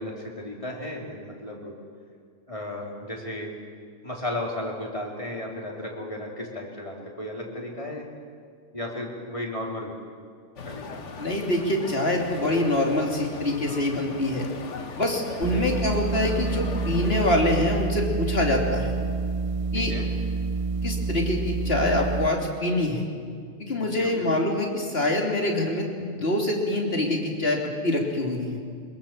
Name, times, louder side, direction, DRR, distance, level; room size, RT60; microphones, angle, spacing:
voice 1, 0.0-1.7 2.5-3.6 4.0-8.1 8.7-9.9 10.7-11.0 15.4-15.7 19.7-20.0 24.0-24.4, left 1 dB, 25° left, -1 dB, 3.6 m, -34 dB
sound 1, 10.6-17.4, left 4 dB, 70° left, 1.6 m, -39 dB
voice 2, 11.2-14.4 15.0-18.9 19.7-19.9 20.8-23.1 23.6-28.6, left 1 dB, 50° left, 0 dB, 3.2 m, -25 dB
sound 2, 15.4-22.3, right 4 dB, 30° right, 0.8 m, -28 dB
23.0 x 21.5 x 7.4 m, 2.1 s
omnidirectional pair, 1.3 m